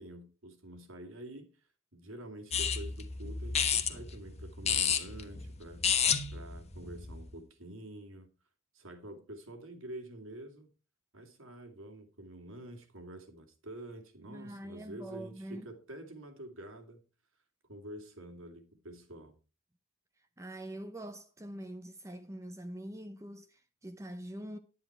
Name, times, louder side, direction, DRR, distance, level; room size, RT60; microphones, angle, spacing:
voice 1, 0.0-1.6 1.9-8.3 8.7-10.7 11.1-17.1 17.6-19.4, right 1 dB, 75° right, 2.6 m, -48 dB
sound 1, 2.5-7.3, left 7 dB, 30° left, 1.2 m, -32 dB
voice 2, 14.3-15.7 20.4-24.6, right 1 dB, 15° right, 0.7 m, -44 dB
10.5 x 9.7 x 4.5 m
head